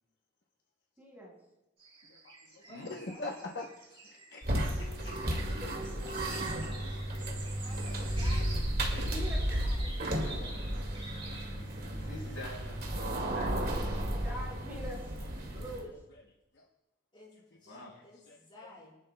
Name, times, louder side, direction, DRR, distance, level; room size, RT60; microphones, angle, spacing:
voice 1, 1.0-1.3 5.6-5.7 6.0-6.1 9.0-9.8 14.1-15.2 15.5-15.9, equal, 10° right, -7 dB, 5.4 m, -44 dB
sound 1, 1.8-5.2 5.4-11.8, right 3 dB, 30° right, 2.8 m, -49 dB
voice 2, 2.1-5.4 6.3-7.3 8.9-9.1 10.9-11.2 11.5-11.7 13.8-14.2 15.5-15.6 16.5-16.7 17.6-17.9 18.3-18.7, left 2 dB, 55° left, 0 dB, 0.9 m, -46 dB
voice 3, 2.6-3.4 4.3-4.4 7.6-8.6 9.4-9.9 17.1-17.3 17.6-19.0, left 2 dB, 25° left, -4 dB, 4.0 m, -53 dB
sound 2, 4.4-15.9, right 1 dB, 50° right, 2.1 m, -33 dB
voice 4, 10.2-10.8 11.5-13.7 17.6-18.0, left 2 dB, 85° left, -3 dB, 5.0 m, -47 dB
24.5 x 11.0 x 2.2 m, 0.95 s
head